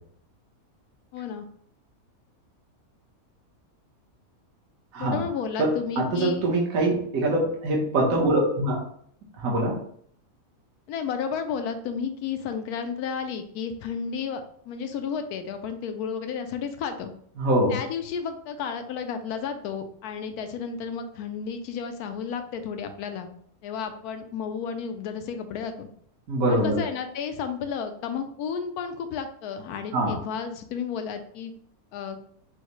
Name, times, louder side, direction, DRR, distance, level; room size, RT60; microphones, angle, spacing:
voice 1, 1.1-1.5 5.0-6.4 10.9-17.1 17.7-23.3 23.6-25.9 26.5-31.5 31.9-32.2, left 6 dB, 85° left, 7 dB, 1.1 m, -32 dB
voice 2, 5.6-8.8 9.4-9.8 17.4-17.8 26.3-26.8 29.9-30.2, right 1 dB, 65° right, -2 dB, 1.5 m, -24 dB
6.2 x 2.1 x 3.0 m, 0.63 s
omnidirectional pair, 1.6 m